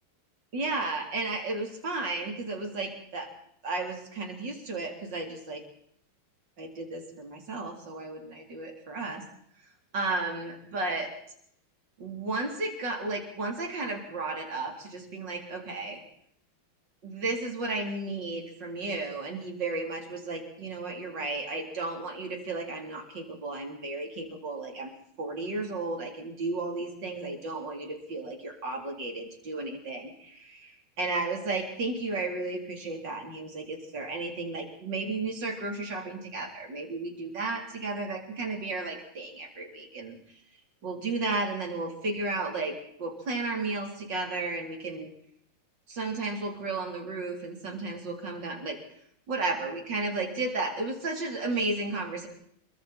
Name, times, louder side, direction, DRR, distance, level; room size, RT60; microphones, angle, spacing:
voice 1, 0.5-3.3 3.6-5.6 6.6-9.2 9.9-11.1 12.0-16.0 17.0-24.9 25.2-40.2 40.8-42.7 43.0-45.1 45.9-48.8 49.3-52.3, right 3 dB, 55° right, 2 dB, 4.4 m, -33 dB
27.5 x 23.0 x 4.4 m, 0.70 s
omnidirectional pair, 2.3 m